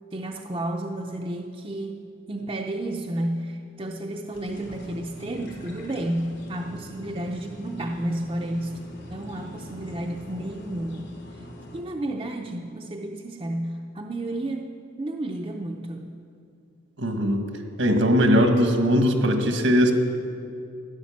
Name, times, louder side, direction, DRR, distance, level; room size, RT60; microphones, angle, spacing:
voice 1, 0.1-2.0 2.3-8.8 9.1-11.4 11.7-14.7 15.0-16.2, right 1 dB, 25° right, 2 dB, 0.6 m, -31 dB
sound 1, 4.3-11.8, equal, 70° left, 3.3 m, -42 dB
voice 2, 17.0-17.4 17.8-19.9, equal, 75° right, 5 dB, 1.6 m, -20 dB
14.5 x 10.0 x 7.2 m, 2.4 s
head